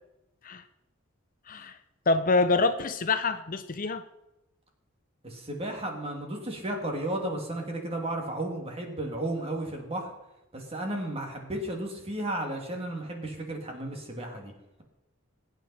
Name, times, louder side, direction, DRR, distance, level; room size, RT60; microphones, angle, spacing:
voice 1, 1.5-1.8 2.1-4.0, left 3 dB, 40° left, 10 dB, 0.7 m, -26 dB
voice 2, 5.2-10.1 10.5-14.5, right 1 dB, 30° right, 2 dB, 2.6 m, -33 dB
22.0 x 9.1 x 4.4 m, 0.93 s
head